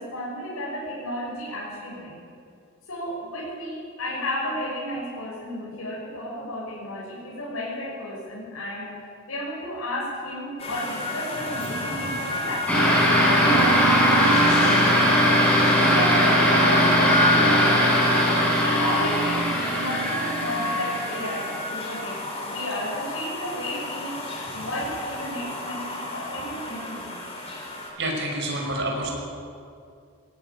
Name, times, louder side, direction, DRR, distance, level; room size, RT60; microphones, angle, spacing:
voice 1, 0.0-2.1 2.9-13.0 13.4-15.1 15.9-18.1 18.7-27.1, left 1 dB, 70° left, -5 dB, 6.2 m, -33 dB
sound 1, 10.6-27.9, left 2 dB, 25° left, 4.2 m, -31 dB
sound 2, 12.7-21.7, equal, 5° left, 6.1 m, -20 dB
voice 2, 28.0-29.1, right 1 dB, 55° right, 0 dB, 5.9 m, -28 dB
20.0 x 18.5 x 9.8 m, 2.4 s
head